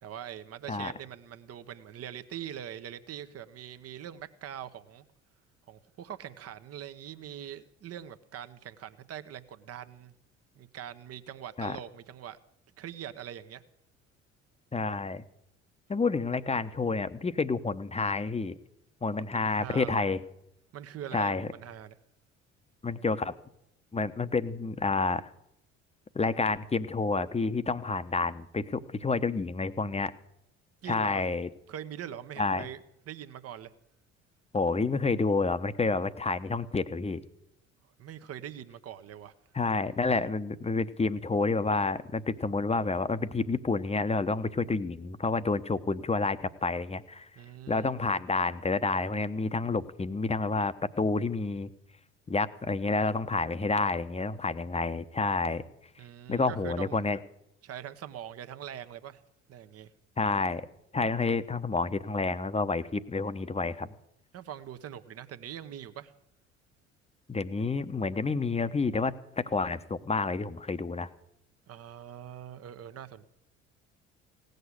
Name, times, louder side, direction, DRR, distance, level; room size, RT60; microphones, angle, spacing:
voice 1, 0.0-5.0 5.7-10.1 10.6-12.4 12.8-13.6 19.3-20.0 20.7-21.9 30.8-31.2 31.7-33.7 38.0-39.3 47.4-47.9 56.0-57.0 57.6-59.2 59.5-59.9 64.3-66.1 71.7-73.3, right 10 dB, 45° right, 11 dB, 1.0 m, -43 dB
voice 2, 14.7-15.2 15.9-18.6 19.0-20.2 21.1-21.5 22.8-23.3 23.9-25.3 26.1-30.1 30.9-31.5 32.4-32.7 34.5-37.2 39.5-47.3 47.7-51.7 52.3-55.6 56.3-57.2 60.2-60.7 60.9-63.9 67.3-71.1, left 3 dB, 20° left, 13 dB, 0.9 m, -29 dB
17.0 x 6.6 x 9.7 m, 0.78 s
hypercardioid pair, 60°, 33 cm